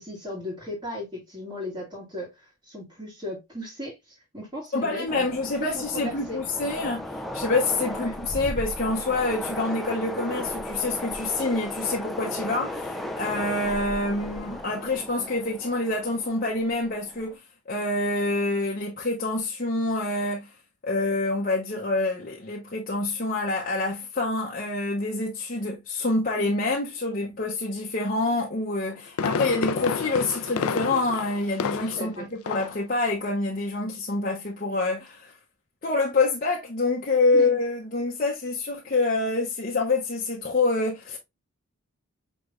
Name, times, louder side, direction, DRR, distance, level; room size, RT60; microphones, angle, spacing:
voice 1, 0.0-5.3 5.6-6.4 7.9-8.1 26.4-26.5 31.8-32.3 37.3-37.5, left 1 dB, 20° right, 1.7 m, -36 dB
voice 2, 4.7-7.0 7.3-17.4 17.7-20.5 20.8-35.3 35.8-41.2, left 2 dB, 40° left, 0.8 m, -26 dB
Train, 5.1-17.3, left 1 dB, ahead, 0.4 m, -36 dB
Fireworks, 28.7-32.1 32.5-32.8 33.2-33.3, left 6 dB, 75° left, 0.4 m, -30 dB
5.2 x 3.3 x 2.3 m
head